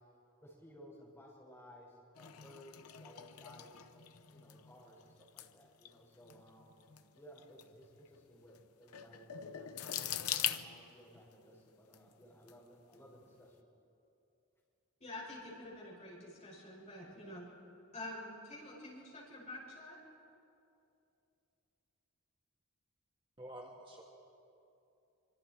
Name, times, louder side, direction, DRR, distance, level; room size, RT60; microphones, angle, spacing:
voice 1, 0.4-4.0 4.3-6.8 7.1-13.7, equal, 10° left, -5 dB, 6.0 m, -58 dB
sound 1, 2.2-11.3 11.9-12.5 12.9-13.2, left 10 dB, 90° left, 0.8 m, -43 dB
voice 2, 15.0-17.5 17.9-20.0, left 1 dB, 30° left, -4 dB, 6.4 m, -47 dB
voice 3, 23.4-24.0, right 1 dB, 25° right, -1 dB, 1.7 m, -49 dB
25.5 x 25.5 x 4.7 m, 2.7 s
head